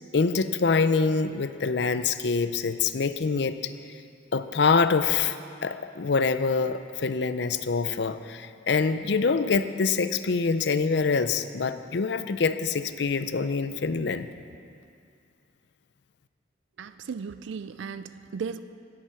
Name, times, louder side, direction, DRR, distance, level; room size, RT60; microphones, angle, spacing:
voice 1, 0.1-3.7 4.3-14.3, left 4 dB, 60° left, 11 dB, 0.5 m, -25 dB
voice 2, 16.8-18.6, right 5 dB, 75° right, 13 dB, 0.4 m, -36 dB
16.5 x 7.7 x 5.7 m, 2.4 s
head